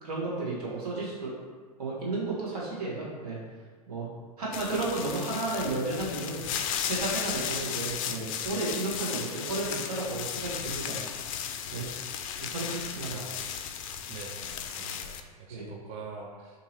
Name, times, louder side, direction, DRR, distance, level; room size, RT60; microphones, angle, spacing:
voice 1, 0.0-1.3 1.8-3.4 3.9-4.1 4.4-6.4 6.8-11.0 11.7-11.8 12.4-13.2 15.5-15.7, right 2 dB, 75° right, -5 dB, 1.4 m, -33 dB
sound 1, 4.5-15.2, left 8 dB, 60° left, 0.4 m, -35 dB
voice 2, 13.1-13.4 14.1-16.6, right 4 dB, 35° right, 0 dB, 0.4 m, -44 dB
2.7 x 2.7 x 4.3 m, 1.5 s
hypercardioid pair, 110°, 20 cm